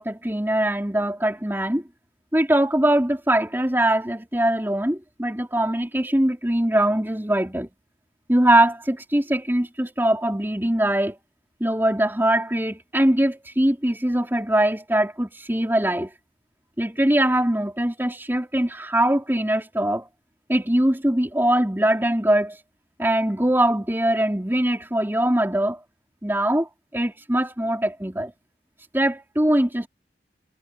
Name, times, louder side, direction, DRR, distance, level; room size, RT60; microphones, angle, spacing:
voice 1, 0.0-1.8 2.3-7.7 8.3-11.2 11.6-16.1 16.8-20.1 20.5-22.6 23.0-25.8 26.2-28.3 28.9-29.9, right 1 dB, 10° right, 3.4 m, -22 dB
head